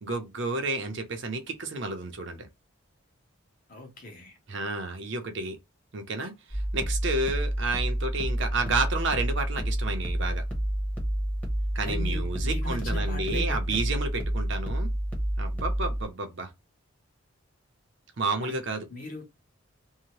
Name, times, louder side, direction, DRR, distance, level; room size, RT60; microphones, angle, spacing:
voice 1, 0.0-2.5 4.5-5.6 5.9-10.4 11.7-14.9 15.4-16.5 18.2-18.9, right 3 dB, 55° right, 0.6 m, -31 dB
voice 2, 3.7-4.4 11.8-13.8 18.4-18.6 18.9-19.2, left 1 dB, 40° left, 0.9 m, -39 dB
sound 1, 6.5-16.1, right 1 dB, 5° left, 0.9 m, -29 dB
2.7 x 2.1 x 3.0 m
head